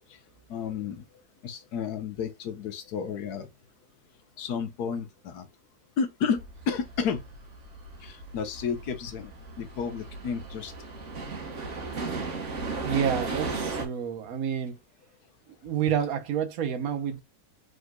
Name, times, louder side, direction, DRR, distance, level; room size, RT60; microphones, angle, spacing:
voice 1, 0.5-1.0 1.4-3.5 4.4-5.5 6.0-7.2 8.0-9.3 9.6-10.7, left 6 dB, 85° left, 1.4 m, -31 dB
sound 1, 6.4-13.8, right 3 dB, 55° right, 1.4 m, -36 dB
voice 2, 12.8-14.8 15.6-17.2, right 8 dB, 70° right, 1.2 m, -29 dB
5.0 x 3.8 x 2.2 m
omnidirectional pair, 1.6 m